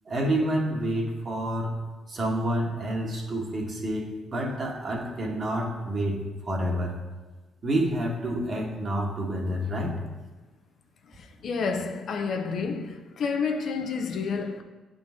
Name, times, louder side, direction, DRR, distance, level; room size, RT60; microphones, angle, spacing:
voice 1, 0.1-1.8 2.1-7.0 7.6-10.1, right 1 dB, 45° right, 1.4 m, -28 dB
voice 2, 11.1-14.6, left 5 dB, 60° left, 0.6 m, -30 dB
10.0 x 3.9 x 3.6 m
cardioid pair, 90°, 0 cm